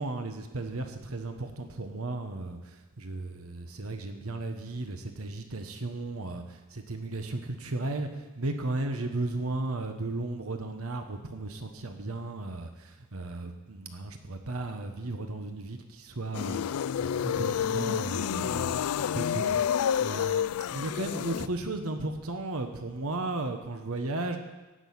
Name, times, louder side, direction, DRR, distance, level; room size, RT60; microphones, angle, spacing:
voice 1, 0.0-8.1 8.4-24.4, right 2 dB, 80° right, 6 dB, 1.2 m, -35 dB
sound 1, 16.3-21.5, left 8 dB, 90° left, 0.3 m, -29 dB
16.0 x 6.3 x 9.5 m, 1.2 s
head